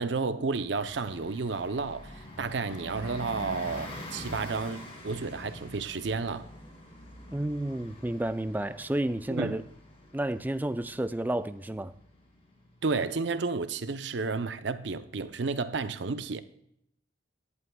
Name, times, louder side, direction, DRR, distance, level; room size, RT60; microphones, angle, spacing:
voice 1, 0.0-6.5 9.3-9.6 12.8-16.4, right 4 dB, 65° right, 0.6 m, -31 dB
Bus, 0.6-12.9, left 1 dB, 30° left, 2.5 m, -45 dB
voice 2, 7.3-9.6 10.1-11.9, right 1 dB, 10° right, 0.4 m, -31 dB
17.5 x 11.0 x 2.3 m
head